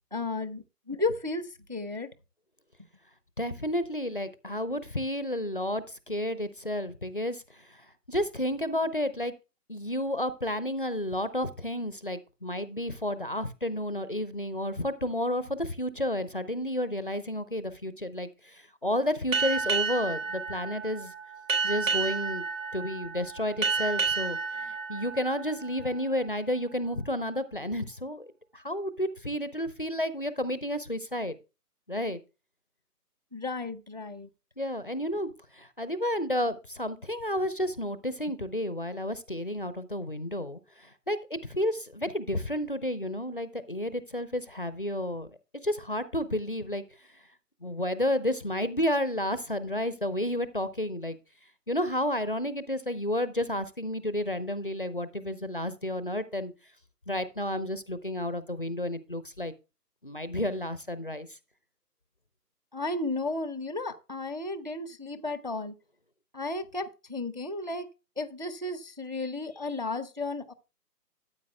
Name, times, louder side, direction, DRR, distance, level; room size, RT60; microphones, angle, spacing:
voice 1, 0.1-2.1 33.3-34.3 62.7-65.7 66.3-67.9 68.2-70.5, left 2 dB, 30° right, 0.5 m, -33 dB
voice 2, 3.4-9.3 9.7-21.1 21.6-22.4 22.7-31.4 31.9-32.2 34.6-45.3 45.6-47.2 47.6-51.2 51.7-56.5 57.1-59.5 60.0-61.4, left 1 dB, 35° left, 0.6 m, -31 dB
Boat Water vehicle, 19.3-26.4, right 5 dB, 50° right, 3.4 m, -31 dB
14.0 x 8.4 x 2.2 m
figure-of-eight pair, 150°, 47 cm